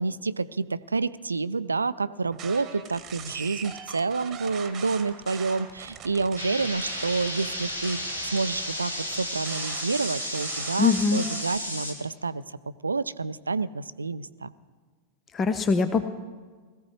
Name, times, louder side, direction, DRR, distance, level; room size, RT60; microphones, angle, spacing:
voice 1, 0.0-14.5, right 4 dB, 80° right, 16 dB, 0.4 m, -29 dB
sound 1, 2.3-11.6, right 7 dB, 30° right, 1.3 m, -42 dB
sound 2, 6.4-11.9, equal, 80° left, 2.2 m, -33 dB
voice 2, 10.8-11.3 15.3-16.1, left 5 dB, 25° left, 10 dB, 0.6 m, -22 dB
20.5 x 15.0 x 3.2 m, 1.4 s
figure-of-eight pair, 90°, 0 cm